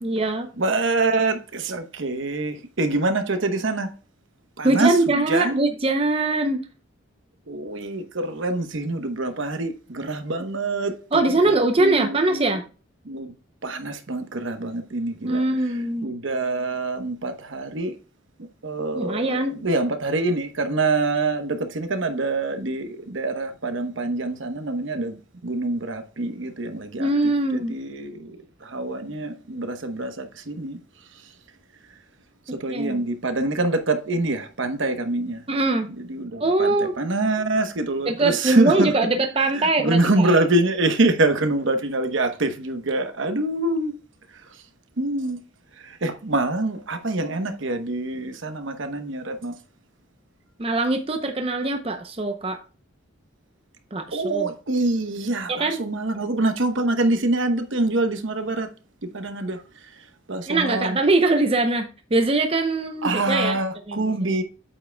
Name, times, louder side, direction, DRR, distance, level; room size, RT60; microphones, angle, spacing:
voice 1, 0.0-0.5 4.6-6.6 11.1-12.6 15.2-16.1 18.9-19.6 27.0-27.8 32.7-33.0 35.5-35.9 36.4-37.0 38.1-40.4 50.6-52.6 53.9-54.5 55.5-55.8 60.5-63.6 63.9-64.3, right 2 dB, 25° right, 0.6 m, -22 dB
voice 2, 0.6-3.9 4.6-5.6 7.5-12.5 13.0-13.3 13.6-15.4 16.0-18.0 18.6-27.1 27.7-30.8 32.5-35.4 36.1-38.9 39.5-43.9 45.0-45.4 45.8-49.5 54.1-58.7 59.0-60.0 60.3-61.0 63.0-64.4, right 2 dB, 65° right, 1.0 m, -25 dB
8.6 x 7.4 x 2.2 m
head